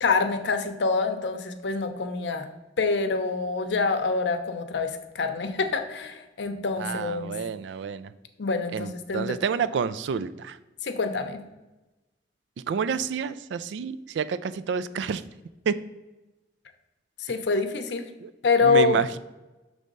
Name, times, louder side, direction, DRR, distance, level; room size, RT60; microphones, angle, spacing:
voice 1, 0.0-2.5 2.8-7.3 8.4-9.4 10.8-11.4 17.2-18.1 18.4-19.0, left 4 dB, 80° left, 7 dB, 0.7 m, -26 dB
voice 2, 6.8-8.1 8.7-10.6 12.7-15.2 15.7-15.8 18.2-18.3 18.6-19.2, right 6 dB, 85° right, 15 dB, 0.3 m, -29 dB
6.2 x 3.3 x 5.2 m, 1.1 s
head